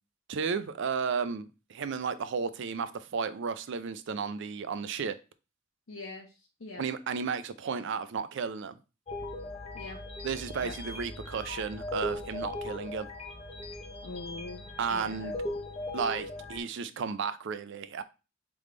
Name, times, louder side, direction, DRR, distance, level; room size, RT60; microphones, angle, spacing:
voice 1, 0.3-5.2 6.8-8.8 10.2-13.1 14.8-15.3 15.9-18.0, right 5 dB, 65° right, 0.4 m, -33 dB
voice 2, 5.9-6.8 9.7-10.0 10.6-10.7 14.0-14.6 14.9-15.4, left 3 dB, 70° left, 0.7 m, -42 dB
sound 1, 9.1-16.6, left 1 dB, 30° left, 0.7 m, -39 dB
3.5 x 3.2 x 3.8 m
head